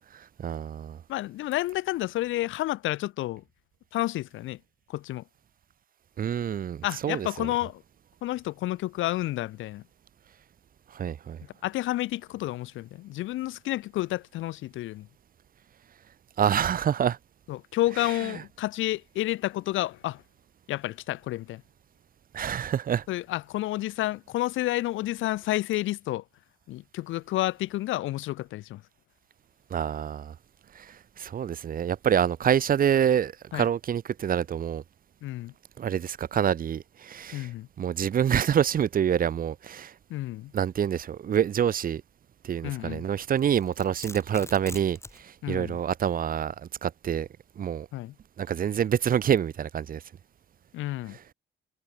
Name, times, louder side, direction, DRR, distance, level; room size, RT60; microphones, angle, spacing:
voice 1, 0.1-1.0 6.2-7.5 10.9-11.4 16.4-17.2 18.2-18.3 22.3-23.0 29.7-30.3 30.7-34.8 35.8-37.5 37.8-39.9 40.5-42.0 42.4-46.5 46.8-47.3 47.6-47.9 48.4-50.0 51.1-51.2, right 9 dB, 45° right, 0.7 m, -27 dB
voice 2, 1.1-3.4 3.9-4.6 4.9-5.2 6.8-7.8 8.2-9.8 11.6-15.1 17.5-20.2 20.7-21.6 23.1-26.2 26.7-28.8 33.5-33.7 35.2-35.5 37.3-37.7 40.1-40.5 42.6-43.0 45.4-45.8 47.9-48.1 50.7-51.2, left 16 dB, 80° left, 0.5 m, -30 dB
Domestic sounds home sounds, 43.3-45.2, left 2 dB, 15° left, 4.2 m, -43 dB
cardioid pair, 90°, 20 cm